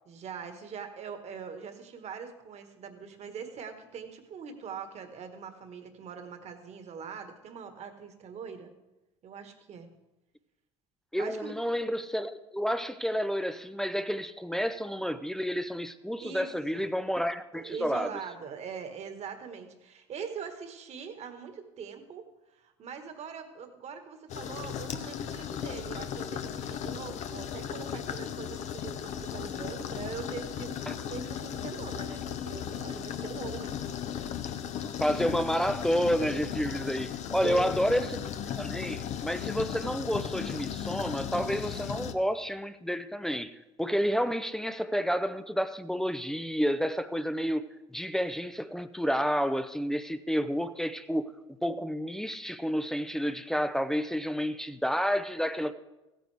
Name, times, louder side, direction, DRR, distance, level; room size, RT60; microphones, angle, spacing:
voice 1, 0.1-8.7 9.2-9.9 11.2-11.6 16.2-16.9 17.5-22.3 22.6-33.7 37.3-37.8, right 6 dB, 45° right, 1.7 m, -42 dB
voice 2, 11.1-18.1 30.9-31.0 35.0-38.2 38.6-47.6 47.9-51.3 51.6-55.7, equal, 5° left, 0.6 m, -30 dB
sound 1, 24.3-42.1, left 9 dB, 50° left, 0.8 m, -36 dB
15.5 x 9.2 x 3.5 m
hypercardioid pair, 80°, 15 cm